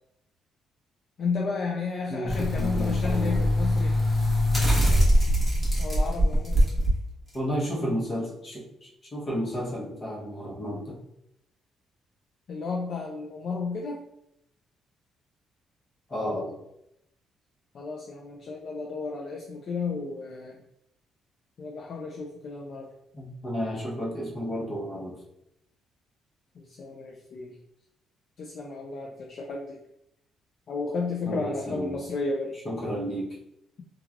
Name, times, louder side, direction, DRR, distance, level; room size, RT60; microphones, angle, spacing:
voice 1, 1.2-4.0 5.8-6.8 12.5-14.0 17.7-20.6 21.6-22.9 26.6-27.6 28.4-29.8 30.7-32.6, left 4 dB, 50° left, -1 dB, 0.4 m, -33 dB
voice 2, 2.1-3.4 7.3-11.0 16.1-16.6 23.1-25.2 31.2-32.0 32.6-33.4, equal, 35° left, -4 dB, 0.9 m, -32 dB
sound 1, 2.3-6.9 7.3-7.4, equal, 10° left, 1.1 m, -23 dB
3.1 x 2.3 x 2.4 m, 0.80 s
cardioid pair, 130°, 0 cm